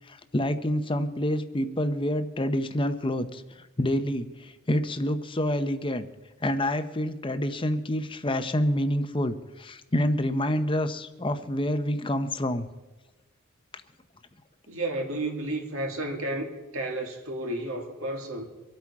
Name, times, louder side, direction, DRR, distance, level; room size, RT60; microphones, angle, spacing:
voice 1, 0.1-3.4 3.8-6.0 6.4-12.7, left 1 dB, 25° left, 0.8 m, -27 dB
voice 2, 14.7-18.4, right 1 dB, 70° right, 2.2 m, -32 dB
24.5 x 8.6 x 4.8 m
head